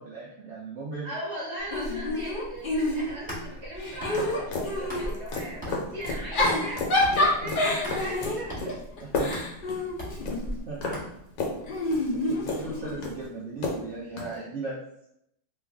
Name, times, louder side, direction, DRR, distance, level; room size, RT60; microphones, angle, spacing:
voice 1, 0.0-1.1 7.4-7.7 9.0-9.3 10.7-11.1 12.1-14.8, right 3 dB, 85° right, -6 dB, 0.6 m, -38 dB
voice 2, 1.0-6.8 7.1-8.8 12.2-12.3, equal, 50° right, -5 dB, 0.9 m, -38 dB
Giggle / Chuckle chortle, 1.7-3.3 3.7-5.2 6.1-10.6 11.7-13.1, left 1 dB, 45° left, 0.7 m, -28 dB
sound 1, 3.0-5.3 5.6-11.5, equal, 5° right, 1.0 m, -41 dB
sound 2, 3.8-14.4, left 3 dB, 80° left, 1.4 m, -34 dB
3.1 x 2.3 x 3.5 m, 0.77 s
omnidirectional pair, 1.9 m